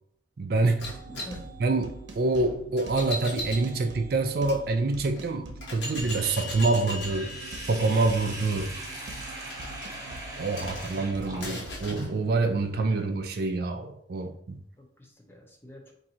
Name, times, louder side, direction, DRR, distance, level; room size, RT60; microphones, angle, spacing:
voice 1, 0.4-0.8 1.6-7.3 7.7-8.7 10.4-14.6, right 3 dB, 55° right, 6 dB, 0.4 m, -26 dB
sound 1, 0.8-4.6 5.2-5.3 5.6-12.1, left 1 dB, 75° left, 1.1 m, -40 dB
sound 2, 0.8-12.2, right 2 dB, 80° right, 0.8 m, -44 dB
voice 2, 1.1-1.4 10.4-10.8 14.8-15.9, left 1 dB, 10° left, 1 dB, 0.6 m, -47 dB
Sink (filling or washing), 6.9-11.8, right 2 dB, 20° right, 1.0 m, -40 dB
3.7 x 2.7 x 4.2 m, 0.67 s
head